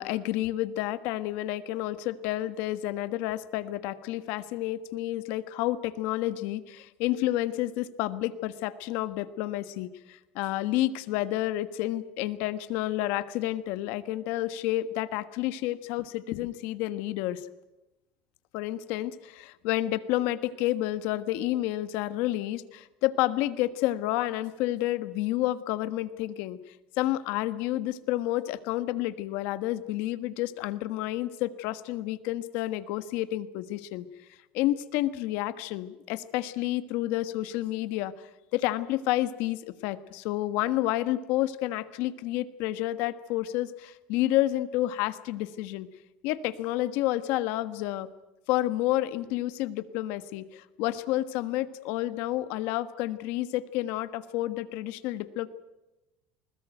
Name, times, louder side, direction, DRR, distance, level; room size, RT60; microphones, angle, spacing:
voice 1, 0.0-17.4 18.5-26.6 27.0-34.0 34.5-45.9 46.2-48.1 48.5-55.5, left 15 dB, 65° left, 13 dB, 1.4 m, -30 dB
21.0 x 20.5 x 9.2 m, 1.0 s
cardioid pair, 155°, 3 cm